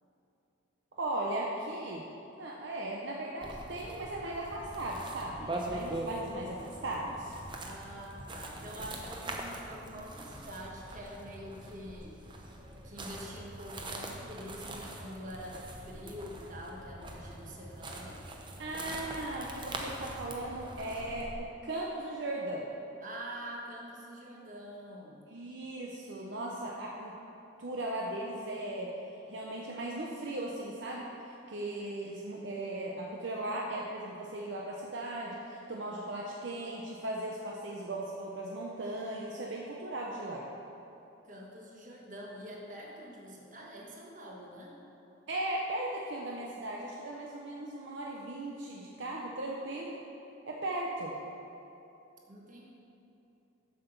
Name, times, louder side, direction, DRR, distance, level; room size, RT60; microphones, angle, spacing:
voice 1, 1.0-2.1 2.4-7.4 18.6-21.4 21.6-22.7 25.3-27.2 27.6-29.0 29.3-40.5 45.3-50.0 50.5-51.2, right 1 dB, 60° right, -2 dB, 0.7 m, -37 dB
sound 1, 3.4-21.4, right 1 dB, 25° right, 0.7 m, -43 dB
voice 2, 7.6-12.2 12.4-12.5 12.8-18.2 18.8-19.0 23.0-25.3 41.2-44.8 52.3-52.7, equal, 40° right, -2 dB, 1.3 m, -46 dB
7.6 x 5.8 x 6.9 m, 2.9 s
head